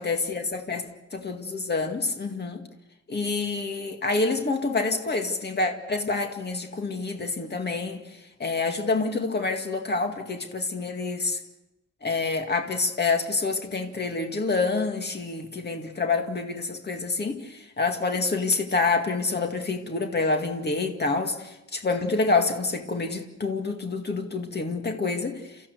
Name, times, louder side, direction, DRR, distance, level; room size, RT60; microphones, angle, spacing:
voice 1, 0.0-2.6 3.1-8.0 8.4-11.4 12.0-25.6, left 3 dB, 35° left, 5 dB, 2.2 m, -27 dB
29.0 x 15.0 x 8.2 m, 0.95 s
wide cardioid pair, 180°, 29 cm